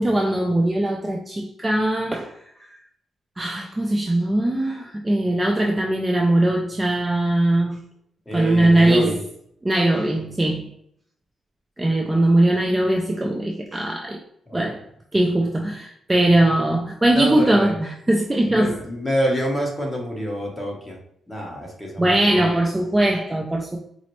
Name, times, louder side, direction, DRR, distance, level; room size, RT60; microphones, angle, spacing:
voice 1, 0.0-2.4 3.4-7.8 8.3-9.1 9.6-10.7 11.8-14.2 14.5-14.9 15.1-18.8 22.0-23.8, right 1 dB, 15° right, 0.3 m, -20 dB
voice 2, 8.3-9.2 14.5-14.7 17.1-17.7 18.5-21.0 21.3-22.5, equal, 10° left, 1.1 m, -27 dB
4.0 x 2.0 x 3.0 m
cardioid pair, 100°, 0 cm